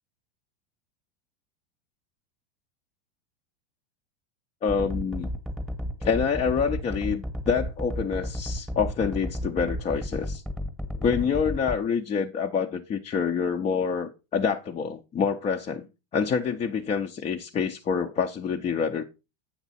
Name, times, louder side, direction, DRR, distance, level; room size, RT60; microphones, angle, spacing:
voice 1, 4.6-5.3 6.0-10.4 11.0-15.9 16.1-19.0, left 6 dB, 20° left, 0.5 m, -27 dB
sound 1, 4.7-11.8, equal, ahead, 1.0 m, -32 dB
8.1 x 6.0 x 4.1 m
supercardioid pair, 130°, 30 cm